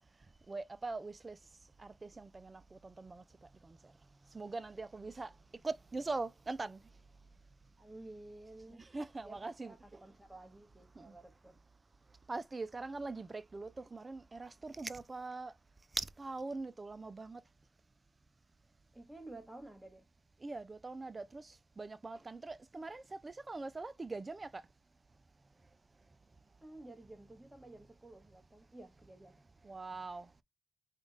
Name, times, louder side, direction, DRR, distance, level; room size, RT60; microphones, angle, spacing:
voice 1, 0.5-1.4 1.8-3.2 3.6-3.8 4.3-5.3 5.6-6.8 8.8-10.0 11.0-11.1 12.3-15.5 16.0-17.4 20.4-24.6 29.6-30.3, right 3 dB, 25° right, 0.3 m, -42 dB
voice 2, 7.8-8.8 9.2-11.6 18.9-20.1 26.6-29.4, right 2 dB, 5° right, 1.2 m, -53 dB
3.6 x 2.3 x 3.9 m
cardioid pair, 90°, 0 cm